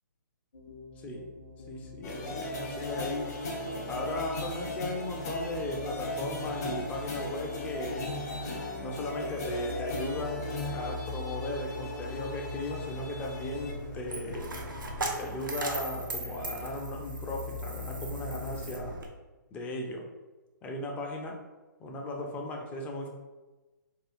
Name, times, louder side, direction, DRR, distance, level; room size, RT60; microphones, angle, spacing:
sound 1, 0.5-18.6, left 4 dB, 80° left, 0.6 m, -43 dB
voice 1, 1.7-3.3 3.8-8.1 8.7-14.5 15.2-19.0 19.5-20.0 20.6-21.4 21.8-23.1, left 1 dB, 15° left, 1 dB, 0.4 m, -37 dB
sound 2, 2.0-16.8, left 1 dB, 55° left, 0.9 m, -38 dB
Coin (dropping), 13.0-19.1, right 2 dB, 85° right, 0.5 m, -39 dB
3.5 x 2.2 x 2.5 m, 1.2 s
figure-of-eight pair, 135°, 11 cm